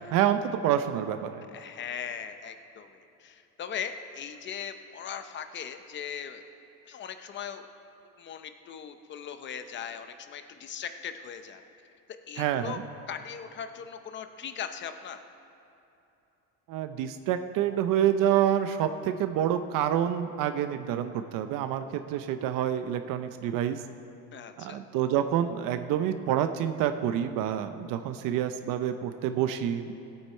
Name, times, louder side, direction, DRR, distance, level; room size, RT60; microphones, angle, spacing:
voice 1, 0.1-1.4 12.4-12.8 16.7-23.8 24.6-29.9, right 10 dB, 65° right, 9 dB, 0.6 m, -27 dB
voice 2, 1.5-6.4 6.9-7.7 8.2-11.6 12.1-12.8 13.1-15.2 24.3-24.8, left 8 dB, 30° left, 9 dB, 0.7 m, -39 dB
19.0 x 8.8 x 4.4 m, 2.9 s
cardioid pair, 160°, 35 cm